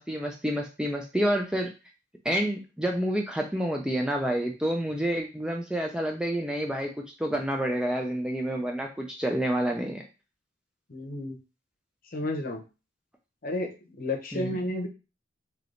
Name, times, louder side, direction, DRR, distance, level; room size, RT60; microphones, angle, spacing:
voice 1, 0.0-1.7 2.2-6.9 7.2-10.0 14.3-14.6, right 1 dB, 5° right, 1 dB, 0.4 m, -28 dB
voice 2, 10.9-11.4 12.1-12.6 13.4-14.9, left 1 dB, 45° left, 2 dB, 0.8 m, -31 dB
3.3 x 2.9 x 3.8 m, 0.30 s
head